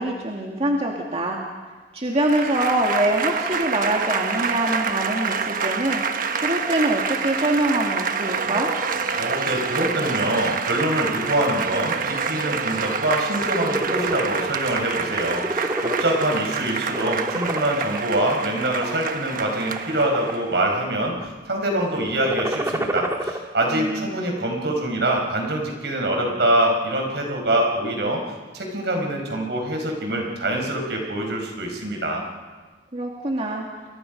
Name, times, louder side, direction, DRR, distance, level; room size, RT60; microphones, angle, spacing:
voice 1, 0.0-1.4 1.9-6.0 6.4-8.7 23.7-24.1 32.9-33.7, right 1 dB, 35° right, -1 dB, 2.2 m, -24 dB
Applause / Crowd, 2.1-20.7, right 5 dB, 50° right, 1.3 m, -27 dB
voice 2, 9.2-28.2 28.5-32.2, right 1 dB, 70° right, 2 dB, 5.4 m, -24 dB
sound 1, 13.2-14.2 14.7-14.9 15.2-16.5 16.9-18.0 18.6-19.1 19.7-20.4 20.7-21.2 22.1-23.4, right 1 dB, 15° right, 1.7 m, -28 dB
29.5 x 23.0 x 5.3 m, 1.4 s
head